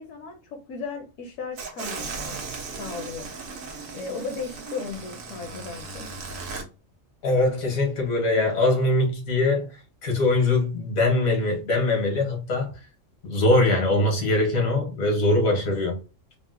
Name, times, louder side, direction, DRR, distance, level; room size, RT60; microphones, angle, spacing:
voice 1, 0.0-2.4 2.8-3.3 3.9-6.1, left 4 dB, 75° left, 1.0 m, -36 dB
sound 1, 1.6-6.6, right 4 dB, 75° right, 1.2 m, -36 dB
voice 2, 7.2-12.7 13.2-16.0, left 2 dB, 90° left, 1.7 m, -22 dB
3.7 x 2.1 x 2.6 m
omnidirectional pair, 1.4 m